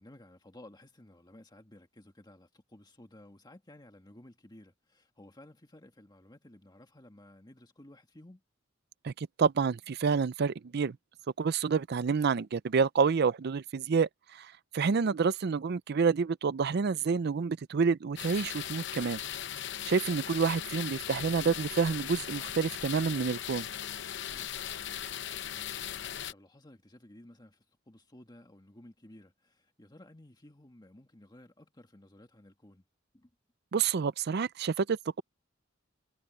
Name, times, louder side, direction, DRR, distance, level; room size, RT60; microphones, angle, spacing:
voice 1, 0.0-8.4 24.3-24.5 25.5-32.8 33.1-33.3, left 1 dB, 20° left, 1.9 m, -55 dB
voice 2, 9.0-11.0 11.4-19.2 19.8-23.7 33.7-35.2, right 5 dB, 55° right, 0.5 m, -28 dB
sound 1, 18.2-26.3, left 10 dB, 65° left, 0.8 m, -38 dB
head